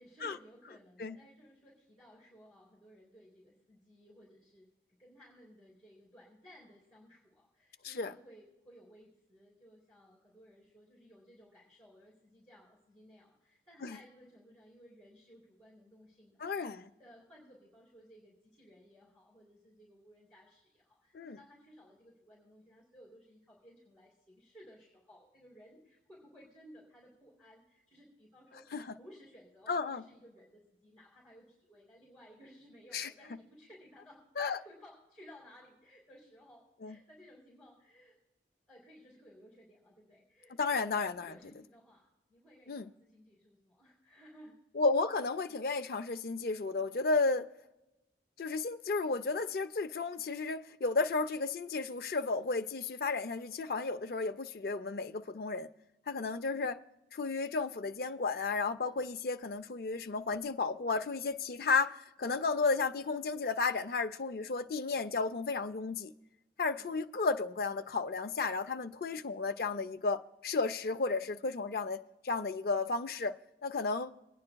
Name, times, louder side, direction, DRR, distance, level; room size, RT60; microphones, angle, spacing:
voice 1, 0.0-4.7 5.0-38.1 38.7-40.8 41.2-44.5 66.6-66.9, equal, 5° left, 3.1 m, -59 dB
voice 2, 16.4-16.8 21.1-21.4 28.7-28.8 29.7-30.0 32.9-33.1 34.4-34.6 36.8-37.0 40.6-41.3 42.7-42.9 44.8-47.5 48.4-55.7 56.1-56.8 57.1-66.1 66.6-74.1, left 4 dB, 55° left, 0.5 m, -33 dB
24.0 x 9.6 x 2.3 m
head